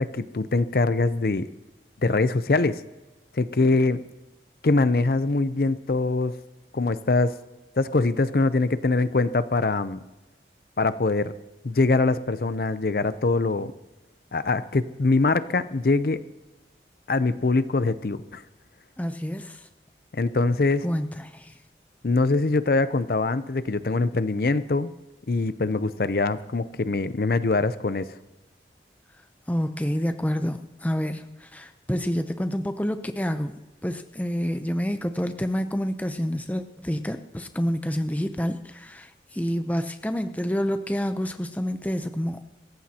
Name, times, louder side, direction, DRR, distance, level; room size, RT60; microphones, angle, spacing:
voice 1, 0.0-1.5 2.0-2.8 3.3-4.0 4.6-6.3 6.7-7.3 7.8-10.0 10.8-11.3 11.6-13.7 14.3-16.2 17.1-18.4 20.1-20.8 22.0-24.9 25.3-28.2, left 3 dB, 55° left, 13 dB, 0.5 m, -23 dB
voice 2, 19.0-19.6 20.8-21.6 29.5-33.5 33.8-42.4, equal, 10° left, 8 dB, 0.6 m, -28 dB
25.0 x 14.5 x 2.9 m, 1.0 s
head